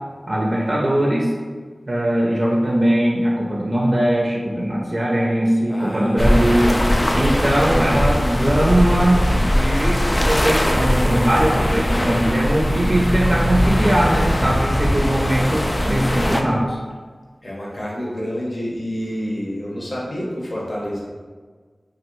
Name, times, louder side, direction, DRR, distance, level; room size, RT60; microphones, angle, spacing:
voice 1, 0.3-1.3 1.9-6.8 7.1-16.8, right 1 dB, 50° right, -4 dB, 0.5 m, -20 dB
voice 2, 5.7-6.3 17.4-21.0, equal, 55° left, -5 dB, 0.9 m, -28 dB
sound 1, 6.2-16.4, equal, 25° left, 0.3 m, -20 dB
3.1 x 2.4 x 3.0 m, 1.5 s
wide cardioid pair, 50°, 0 cm